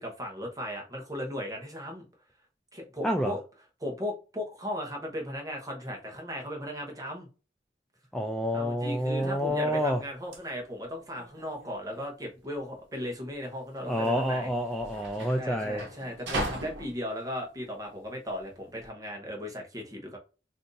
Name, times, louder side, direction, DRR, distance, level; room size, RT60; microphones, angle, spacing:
voice 1, 0.0-2.0 2.7-3.4 3.8-7.3 8.5-14.5 15.4-20.2, equal, 20° right, 0.9 m, -37 dB
voice 2, 8.1-10.0 13.9-15.8, equal, 5° left, 0.3 m, -28 dB
sound 1, 8.8-18.9, right 1 dB, 85° right, 0.9 m, -41 dB
2.6 x 2.5 x 3.8 m
head